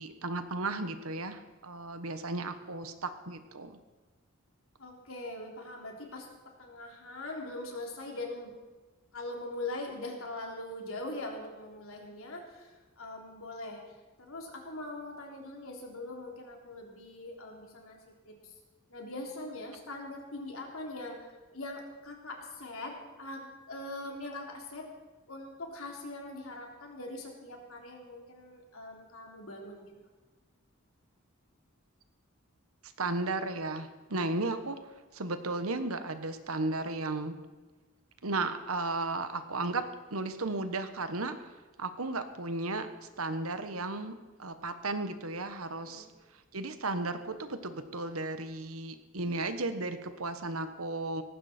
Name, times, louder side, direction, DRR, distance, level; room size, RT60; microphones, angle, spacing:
voice 1, 0.0-3.8 32.8-34.8 35.1-37.3 38.2-41.5 41.8-42.9 43.2-44.1 44.4-46.1 46.5-51.2, right 2 dB, 90° right, 9 dB, 1.4 m, -34 dB
voice 2, 4.8-6.3 6.6-8.5 9.1-13.8 14.2-18.5 18.9-21.2 21.5-24.9 25.3-29.9 45.8-46.1, left 2 dB, 80° left, 0 dB, 3.5 m, -42 dB
18.0 x 15.5 x 4.5 m, 1.3 s
head